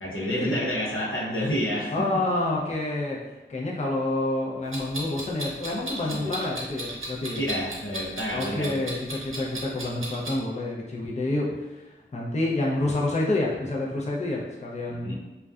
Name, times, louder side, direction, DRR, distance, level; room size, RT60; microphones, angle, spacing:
voice 1, 0.0-2.0 7.4-8.8 14.9-15.1, equal, 85° left, -5 dB, 0.7 m, -29 dB
voice 2, 1.9-3.2 3.5-7.4 8.3-15.1, left 2 dB, 35° left, -3 dB, 0.4 m, -28 dB
Clock, 4.7-10.4, right 1 dB, 80° right, 0.6 m, -35 dB
2.5 x 2.2 x 2.3 m, 1.1 s
wide cardioid pair, 45°, 20 cm